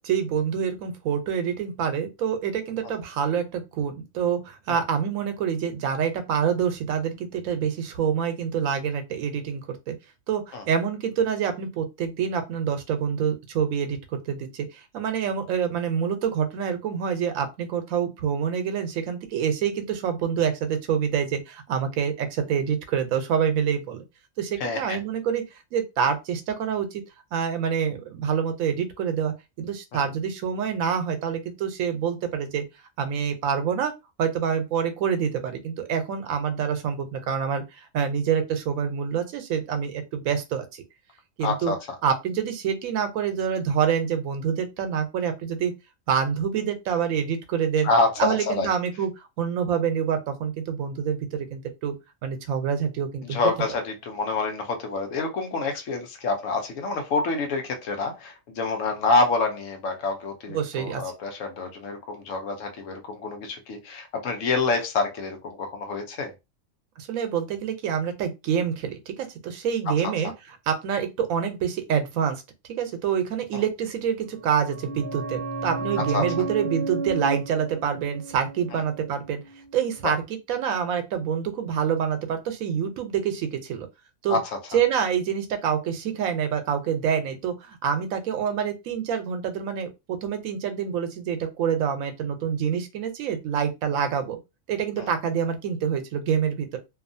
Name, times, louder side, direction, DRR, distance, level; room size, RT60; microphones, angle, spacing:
voice 1, 0.0-9.9 10.3-24.0 24.4-27.0 27.3-32.6 33.0-33.9 34.2-40.8 41.4-41.7 42.0-45.7 46.1-47.9 48.2-49.1 49.4-51.9 52.2-53.4 60.5-61.0 67.0-72.4 72.8-79.4 79.7-80.2 80.5-83.9 84.2-84.4 84.7-94.4 94.7-96.8, right 7 dB, 85° right, 1.0 m, -26 dB
voice 2, 24.6-25.0 29.9-30.0 41.4-41.8 47.8-48.7 53.2-66.3 73.5-73.6 76.1-76.3 80.0-80.1 84.3-84.5 95.0-95.1, left 3 dB, 70° left, 1.0 m, -27 dB
sound 1, 74.3-79.7 80.0-80.1, right 3 dB, 50° right, 0.7 m, -33 dB
2.7 x 2.4 x 2.5 m
omnidirectional pair, 1.4 m